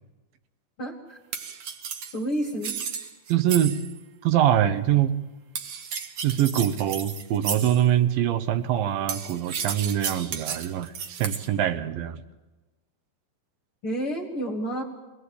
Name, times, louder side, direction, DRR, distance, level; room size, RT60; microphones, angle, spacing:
voice 1, 0.8-1.2 2.1-2.8 13.8-14.8, right 1 dB, 45° left, 2 dB, 1.9 m, -30 dB
sound 1, 1.3-4.0 5.6-7.9 9.1-11.5, right 7 dB, 60° right, 1.8 m, -33 dB
voice 2, 3.3-3.8 4.2-5.1 6.2-12.2, right 11 dB, 80° right, 12 dB, 2.6 m, -24 dB
24.0 x 19.5 x 8.4 m, 1.2 s
omnidirectional pair, 4.1 m